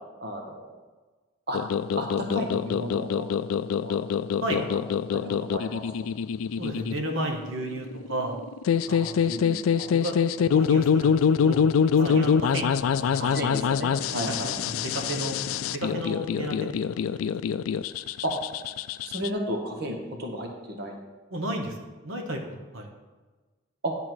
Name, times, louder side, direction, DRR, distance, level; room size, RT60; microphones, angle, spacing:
voice 1, 0.2-0.7 1.5-1.6 2.0-3.3 3.8-3.9 4.5-4.6 5.1-5.8 8.9-9.9 12.0-12.1 13.2-14.5 18.2-18.3 19.1-20.9 23.8-24.0, equal, 50° right, 2 dB, 1.1 m, -33 dB
sound 1, 1.5-19.3, left 7 dB, 90° left, 0.3 m, -25 dB
voice 2, 6.6-8.3 8.9-9.4 9.9-10.1 10.5-11.6 11.9-13.4 14.3-15.4 15.7-16.9 17.2-17.3 21.3-22.9, right 1 dB, 80° right, 2 dB, 1.0 m, -33 dB
10.5 x 3.7 x 6.1 m, 1.3 s
head